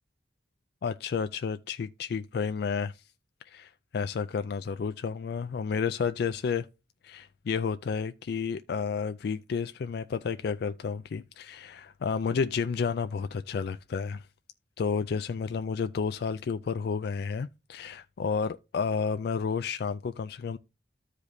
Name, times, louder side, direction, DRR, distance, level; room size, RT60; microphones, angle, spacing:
voice 1, 0.8-3.0 3.5-6.7 7.0-14.3 14.8-20.6, left 5 dB, 60° left, 0.3 m, -31 dB
13.5 x 5.0 x 2.6 m
head